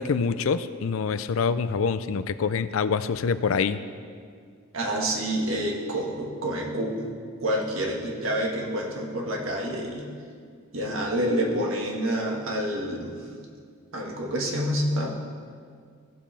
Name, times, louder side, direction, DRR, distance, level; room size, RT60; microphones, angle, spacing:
voice 1, 0.0-3.8, left 5 dB, 75° left, 13 dB, 0.4 m, -25 dB
voice 2, 4.7-7.1 7.4-10.0 10.7-13.2 13.9-15.1, right 1 dB, 75° right, 0 dB, 1.7 m, -28 dB
16.5 x 7.5 x 3.4 m, 2.1 s
head